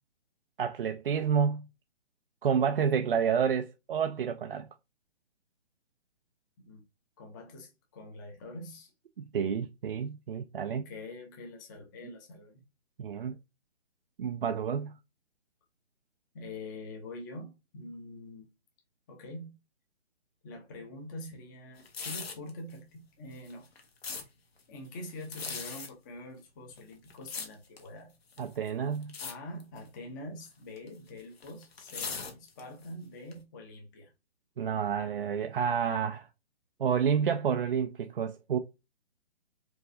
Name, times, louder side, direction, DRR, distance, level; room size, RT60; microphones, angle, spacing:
voice 1, 0.6-1.7 2.4-4.7 9.3-10.8 13.0-13.4 14.2-14.9 28.4-29.1 34.6-36.3 36.8-38.6, right 7 dB, 55° right, 0.4 m, -29 dB
voice 2, 7.2-8.9 10.7-12.6 16.3-18.5 19.1-19.6 20.4-23.7 24.7-28.1 29.2-34.1 35.1-35.2, left 1 dB, 15° left, 0.7 m, -45 dB
sound 1, 21.8-22.5 23.3-24.2 25.2-25.9 26.7-27.9 28.3-28.7 29.0-29.3 29.6-29.9 30.8-32.8 33.3-33.4, left 5 dB, 60° left, 1.4 m, -39 dB
4.7 x 3.2 x 2.6 m
hypercardioid pair, 155°, 34 cm